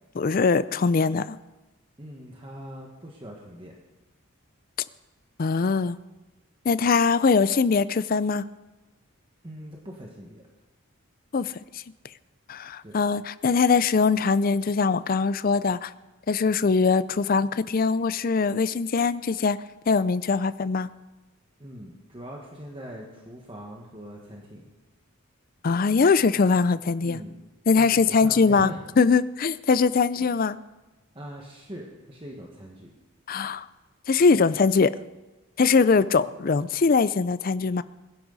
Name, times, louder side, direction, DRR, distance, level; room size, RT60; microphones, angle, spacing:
voice 1, 0.1-1.4 5.4-6.0 6.7-8.5 11.3-11.8 12.5-15.9 16.3-19.6 19.9-20.9 25.6-27.2 27.7-30.6 33.3-33.7 34.1-34.9 35.6-37.8, left 4 dB, 40° left, 16 dB, 0.4 m, -22 dB
voice 2, 2.0-3.7 9.4-10.4 12.8-13.0 21.6-24.7 27.0-27.4 27.7-28.8 31.1-32.9, equal, 25° right, -1 dB, 1.6 m, -41 dB
21.0 x 11.5 x 4.1 m, 1.1 s
head